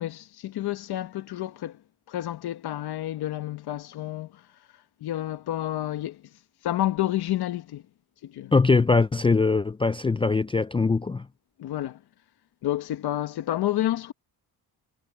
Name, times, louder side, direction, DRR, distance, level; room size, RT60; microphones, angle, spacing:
voice 1, 0.0-1.8 2.1-4.5 5.0-6.3 6.6-7.8 8.2-8.5 11.6-12.0 12.6-14.1, left 13 dB, 80° left, 1.4 m, -30 dB
voice 2, 8.5-11.3, left 4 dB, 15° left, 0.4 m, -22 dB
cardioid pair, 95°, 38 cm